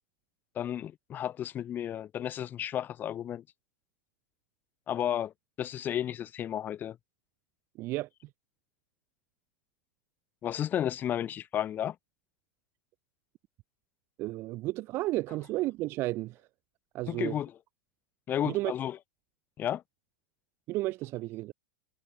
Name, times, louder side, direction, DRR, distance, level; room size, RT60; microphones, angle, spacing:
voice 1, 0.5-3.4 4.9-5.3 5.6-7.0 10.4-11.9 17.1-17.5 18.3-19.0 19.6-19.8, left 10 dB, 30° left, 3.1 m, -32 dB
voice 2, 7.8-8.1 14.2-16.4 16.9-17.4 18.4-18.7 20.7-21.5, right 18 dB, 40° right, 0.8 m, -32 dB
figure-of-eight pair, 95°, 7 cm